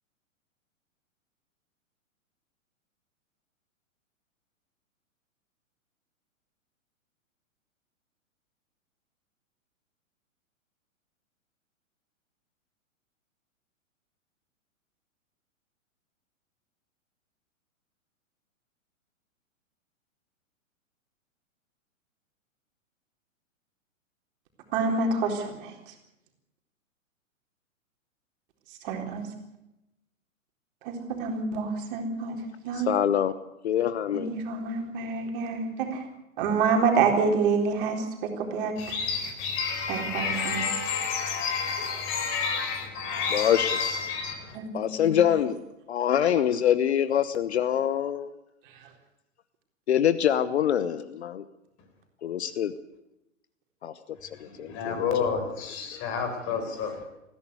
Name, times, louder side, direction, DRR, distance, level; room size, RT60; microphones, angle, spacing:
voice 1, 24.7-25.7 28.8-29.3 30.8-32.4 32.6-32.9 34.1-36.0 36.4-38.7 39.9-40.6 44.5-45.1, right 4 dB, 40° right, 4.1 m, -27 dB
voice 2, 32.7-33.3 33.6-34.4 43.3-43.7 44.7-45.6 45.9-48.3 49.9-51.4 52.2-52.7 53.8-53.9 54.4-55.1, left 10 dB, 55° left, 1.1 m, -25 dB
voice 3, 38.8-44.6 54.3-57.0, left 6 dB, 30° left, 4.7 m, -30 dB
20.5 x 15.5 x 8.3 m
figure-of-eight pair, 110°, 40 cm